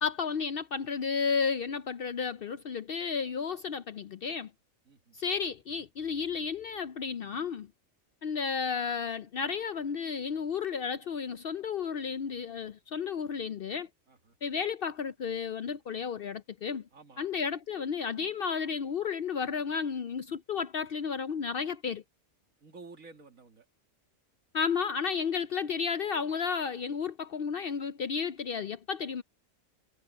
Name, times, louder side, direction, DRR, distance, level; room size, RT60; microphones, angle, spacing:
voice 1, 0.0-4.5 5.1-7.7 8.2-13.9 14.4-16.8 17.2-22.0 24.5-29.2, left 6 dB, 60° left, 0.6 m, -32 dB
voice 2, 4.9-5.2 14.1-14.3 16.9-17.3 22.6-23.7, right 4 dB, 80° right, 2.5 m, -52 dB
omnidirectional pair, 1.4 m